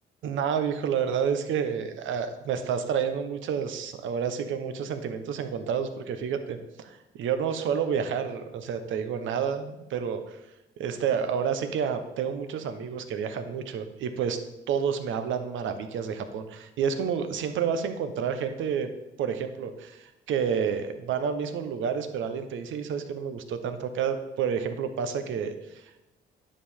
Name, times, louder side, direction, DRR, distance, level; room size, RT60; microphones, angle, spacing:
voice 1, 0.2-10.4 10.8-14.4 14.7-18.9 19.2-26.0, right 7 dB, 80° right, 8 dB, 0.9 m, -29 dB
10.0 x 6.6 x 3.6 m, 0.98 s
cardioid pair, 90°, 20 cm